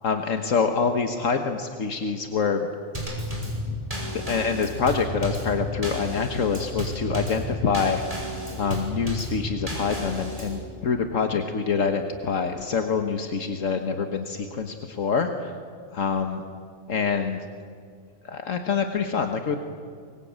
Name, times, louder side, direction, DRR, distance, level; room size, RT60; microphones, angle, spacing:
voice 1, 0.0-2.7 3.7-8.0 8.6-15.5 15.9-16.4 16.9-17.5 18.2-19.6, left 5 dB, 75° left, 6 dB, 1.7 m, -26 dB
Drum kit / Snare drum / Bass drum, 2.9-10.6, equal, 25° right, 5.8 m, -32 dB
24.5 x 22.5 x 8.8 m, 2.2 s
omnidirectional pair, 1.4 m